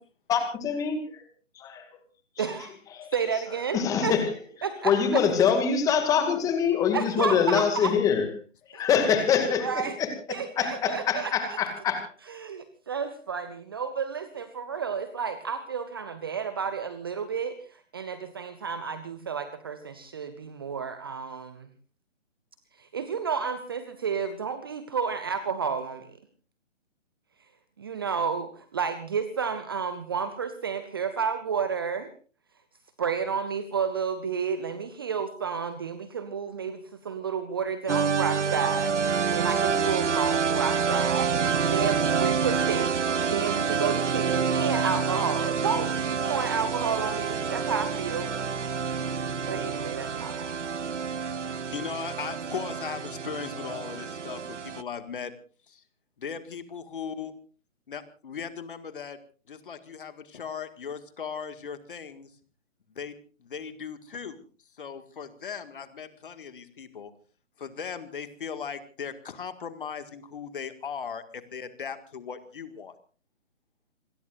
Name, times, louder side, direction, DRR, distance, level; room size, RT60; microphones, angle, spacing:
voice 1, 0.3-1.2 1.5-1.9 2.4-2.5 2.9-3.1 3.7-4.3 4.8-8.3 8.7-12.0, left 7 dB, 10° left, 7 dB, 2.1 m, -25 dB
voice 2, 2.4-2.7 3.1-4.2 4.6-5.2 6.9-7.9 8.7-8.9 9.6-10.0 10.3-11.6 12.3-21.7 22.8-26.1 27.8-32.1 33.0-41.3 41.6-48.4 49.5-50.6, right 6 dB, 20° right, 12 dB, 0.7 m, -31 dB
sound 1, 37.9-54.8, right 6 dB, 65° right, 0.8 m, -28 dB
voice 3, 51.7-55.3 55.7-55.8 56.2-57.3 57.9-59.2 59.5-62.3 62.9-64.4 64.8-67.1 67.6-72.9, left 6 dB, 45° left, 10 dB, 1.9 m, -38 dB
27.0 x 21.0 x 2.5 m, 0.38 s
figure-of-eight pair, 145°, 38 cm